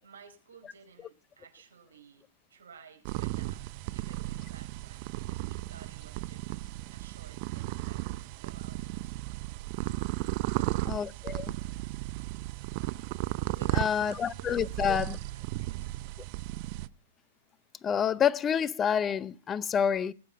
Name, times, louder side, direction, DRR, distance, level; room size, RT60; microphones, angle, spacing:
voice 1, 0.0-2.2 2.5-3.6 3.9-6.5 6.9-9.5 10.5-11.0 12.7-13.0 13.5-16.0, right 6 dB, 80° right, 4.8 m, -55 dB
sound 1, 3.0-16.9, right 19 dB, 45° right, 0.6 m, -35 dB
voice 2, 10.9-11.5 13.7-15.2 17.8-20.1, left 8 dB, 20° left, 0.5 m, -28 dB
20.0 x 7.6 x 4.9 m
hypercardioid pair, 120°, 0 cm